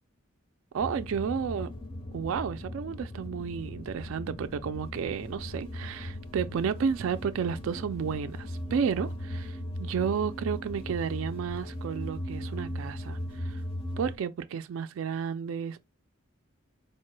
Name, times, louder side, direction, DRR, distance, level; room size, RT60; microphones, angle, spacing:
voice 1, 0.7-1.7 2.1-13.6 14.0-15.8, right 7 dB, 65° right, 0.3 m, -32 dB
sound 1, 0.8-14.2, left 1 dB, 25° left, 0.5 m, -38 dB
4.3 x 2.2 x 3.1 m
head